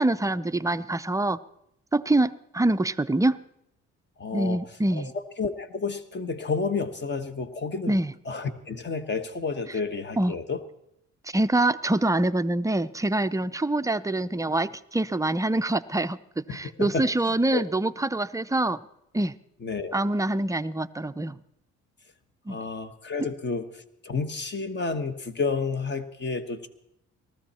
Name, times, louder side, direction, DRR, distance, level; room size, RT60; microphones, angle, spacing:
voice 1, 0.0-1.4 1.9-3.4 4.3-5.1 7.9-8.1 10.2-10.3 11.3-18.8 19.1-19.3 19.9-21.4 22.5-22.6, right 2 dB, 10° right, 12 dB, 0.4 m, -25 dB
voice 2, 4.2-4.6 4.9-8.0 8.2-10.6 16.5-17.6 19.6-20.0 22.5-26.7, left 4 dB, 35° left, 10 dB, 1.3 m, -31 dB
19.0 x 14.0 x 4.3 m, 0.79 s
cardioid pair, 90°, 30 cm